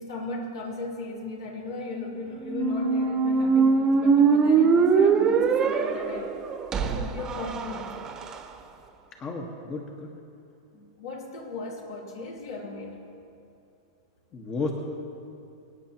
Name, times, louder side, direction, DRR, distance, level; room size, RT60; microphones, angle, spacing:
voice 1, 0.0-6.4 6.8-8.1 11.0-13.0, left 2 dB, 75° left, -2 dB, 2.9 m, -37 dB
Squeak, 2.4-8.4, right 5 dB, 25° right, 1.1 m, -22 dB
voice 2, 9.2-10.1 14.3-14.7, left 3 dB, 30° left, 1 dB, 1.5 m, -32 dB
24.5 x 9.3 x 3.0 m, 2.6 s
hypercardioid pair, 110°, 2 cm